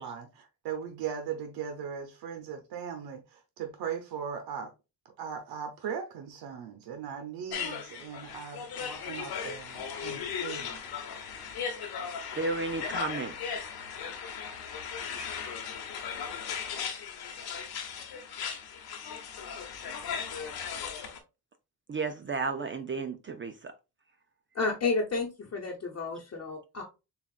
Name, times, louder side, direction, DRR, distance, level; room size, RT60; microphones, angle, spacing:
voice 1, 0.0-4.7 5.2-10.8, right 7 dB, 85° right, 0.8 m, -39 dB
sound 1, 7.5-21.2, left 7 dB, 80° left, 1.1 m, -37 dB
voice 2, 12.4-13.3 21.9-23.7, right 4 dB, 30° right, 0.5 m, -33 dB
voice 3, 24.5-26.8, left 4 dB, 40° left, 1.0 m, -31 dB
6.8 x 2.4 x 2.5 m
cardioid pair, 95°, 38 cm